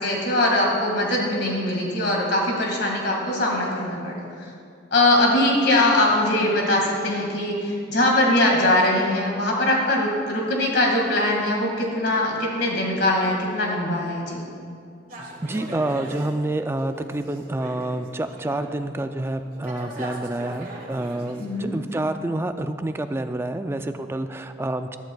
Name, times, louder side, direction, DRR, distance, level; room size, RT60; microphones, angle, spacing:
voice 1, 0.0-4.5 4.9-14.4 21.4-21.7, left 1 dB, 60° left, -1 dB, 2.0 m, -22 dB
sound 1, 15.1-18.8 19.1-22.0, right 1 dB, 45° right, 1.4 m, -40 dB
voice 2, 15.4-25.0, right 1 dB, 15° right, 8 dB, 0.3 m, -28 dB
14.0 x 11.5 x 2.3 m, 2.4 s
head